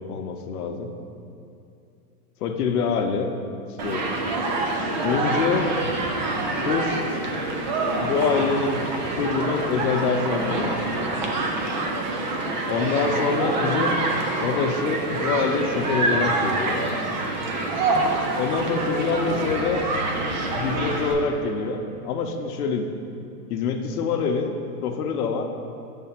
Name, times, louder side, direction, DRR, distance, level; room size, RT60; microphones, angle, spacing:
voice 1, 0.1-0.9 2.4-3.3 3.8-4.1 5.0-5.7 6.4-7.0 8.0-8.9 9.2-11.1 12.7-13.9 14.4-16.8 18.4-19.8 20.5-22.9 23.5-24.5 24.8-25.5, left 5 dB, 70° left, 5 dB, 0.8 m, -25 dB
Human group actions, 3.8-21.1, right 2 dB, 35° right, 0.4 m, -26 dB
6.4 x 3.4 x 5.7 m, 2.6 s
supercardioid pair, 165°, 47 cm